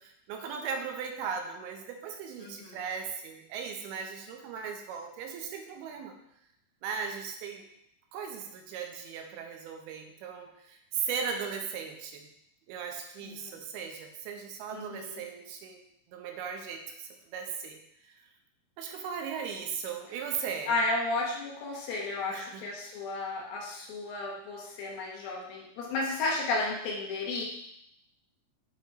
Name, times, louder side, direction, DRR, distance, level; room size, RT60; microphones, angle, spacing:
voice 1, 0.0-6.2 6.8-7.7 8.1-12.3 12.7-15.8 16.1-17.8 18.1-18.2 18.8-20.8 22.3-22.7, right 6 dB, 85° right, 4 dB, 2.6 m, -37 dB
voice 2, 2.4-2.8 13.2-13.6 14.7-15.2 20.7-27.5, left 2 dB, 70° left, -2 dB, 2.6 m, -33 dB
8.0 x 3.0 x 4.4 m, 0.76 s
omnidirectional pair, 4.6 m